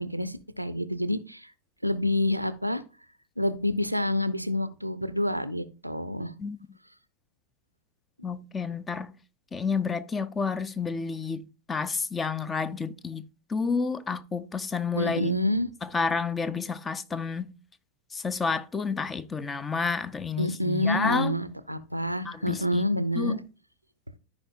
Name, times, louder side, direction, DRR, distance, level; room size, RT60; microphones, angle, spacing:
voice 1, 0.0-1.5 1.8-2.8 3.4-6.3 14.9-15.7 20.4-23.4, left 1 dB, 90° right, 0.5 m, -28 dB
voice 2, 8.2-9.1 9.5-13.2 13.5-15.4 15.8-17.5 18.1-21.3 22.2-22.8 23.2-23.4, left 5 dB, 15° left, 0.5 m, -30 dB
14.0 x 4.8 x 2.5 m
figure-of-eight pair, 90°, 0 cm